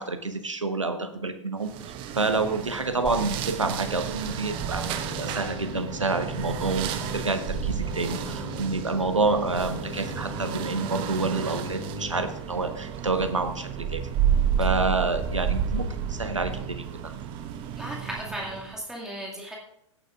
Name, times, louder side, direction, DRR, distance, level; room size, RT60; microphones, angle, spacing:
voice 1, 0.0-1.7 2.2-14.0 14.6-17.1, right 3 dB, 80° right, 9 dB, 1.2 m, -28 dB
sound 1, 1.6-18.8, right 8 dB, 35° right, 1.0 m, -31 dB
sound 2, 4.8-12.3, left 4 dB, 80° left, 2.5 m, -39 dB
voice 2, 17.8-19.6, right 1 dB, 5° right, -4 dB, 2.2 m, -36 dB
16.5 x 9.2 x 2.5 m, 0.77 s
figure-of-eight pair, 100°, 16 cm